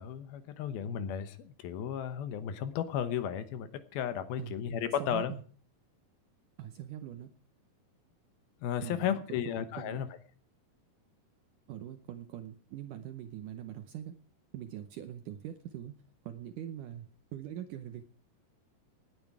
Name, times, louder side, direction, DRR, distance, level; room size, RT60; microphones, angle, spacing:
voice 1, 0.0-5.3 8.6-10.1, left 9 dB, 75° left, 12 dB, 2.7 m, -34 dB
voice 2, 5.0-5.4 6.6-7.3 8.8-9.2 9.5-10.0 11.7-14.2 14.5-15.9 16.2-18.0, right 11 dB, 75° right, 9 dB, 2.0 m, -43 dB
18.0 x 9.5 x 4.8 m, 0.42 s
omnidirectional pair, 4.7 m